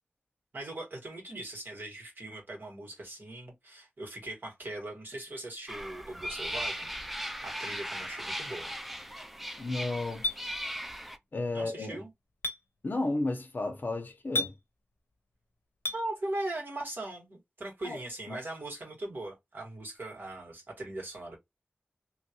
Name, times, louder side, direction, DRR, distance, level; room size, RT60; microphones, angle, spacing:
voice 1, 0.5-6.9 7.4-8.7 11.5-12.1 15.9-21.4, right 1 dB, 60° right, 1.8 m, -40 dB
sound 1, 5.7-11.2, equal, 5° right, 0.4 m, -38 dB
voice 2, 9.6-10.3 11.3-12.0 12.8-14.5 17.8-18.0 18.3-18.4, left 2 dB, 55° left, 0.8 m, -33 dB
Chink clink, 10.2-10.4 12.4-12.6 14.4-14.5 15.9-16.0, left 3 dB, 90° left, 0.6 m, -30 dB
3.0 x 2.5 x 2.9 m
wide cardioid pair, 80°, 4 cm